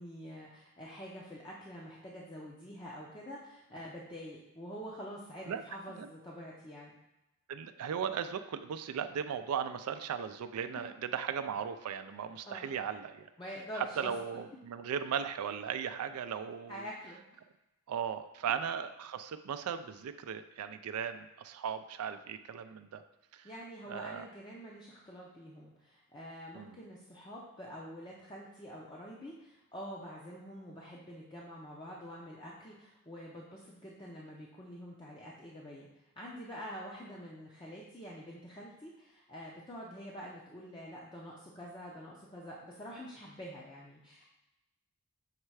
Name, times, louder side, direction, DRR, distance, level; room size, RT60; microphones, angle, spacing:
voice 1, 0.0-6.9 12.4-12.7 13.4-14.1 16.7-17.2 18.5-18.6 23.4-35.9 36.2-44.3, equal, 20° left, -4 dB, 0.6 m, -46 dB
voice 2, 7.5-13.3 13.8-16.9 17.9-23.0 23.3-23.5 23.9-24.3 26.5-26.8, right 7 dB, 85° right, 9 dB, 0.4 m, -37 dB
6.5 x 3.2 x 4.7 m, 0.95 s
head